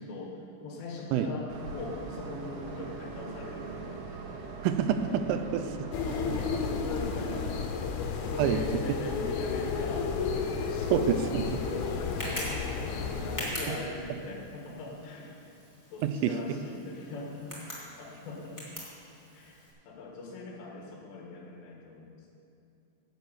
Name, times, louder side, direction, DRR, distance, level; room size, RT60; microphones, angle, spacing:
voice 1, 0.0-4.1 6.0-10.1 10.4-15.3 15.9-18.6 19.3-22.4, left 3 dB, 65° left, -2 dB, 3.6 m, -41 dB
Train, 1.5-14.1, right 4 dB, 70° right, 3.0 m, -44 dB
voice 2, 4.6-5.7 6.3-6.4 8.4-8.6 10.9-11.4 16.0-16.3, right 9 dB, 90° right, 9 dB, 3.3 m, -27 dB
sound 1, 5.9-13.5, left 5 dB, 90° left, 3.5 m, -32 dB
Tick, 10.5-19.7, equal, 5° left, 2.0 m, -43 dB
11.0 x 8.0 x 8.2 m, 2.8 s
omnidirectional pair, 5.7 m